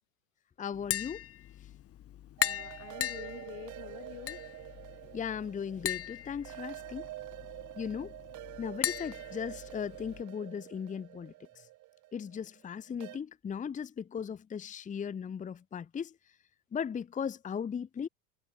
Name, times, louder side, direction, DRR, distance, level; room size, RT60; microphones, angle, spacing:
voice 1, 0.6-1.2 5.1-7.0 7.8-8.1 8.6-11.3 12.1-16.1 16.7-18.1, left 7 dB, 20° left, 1.0 m, -37 dB
Tap, 0.7-10.2, left 12 dB, 35° left, 1.7 m, -39 dB
voice 2, 2.4-4.4, left 19 dB, 75° left, 5.1 m, -47 dB
sound 1, 2.4-13.2, right 18 dB, 45° right, 1.6 m, -47 dB
supercardioid pair, 105°, 40 cm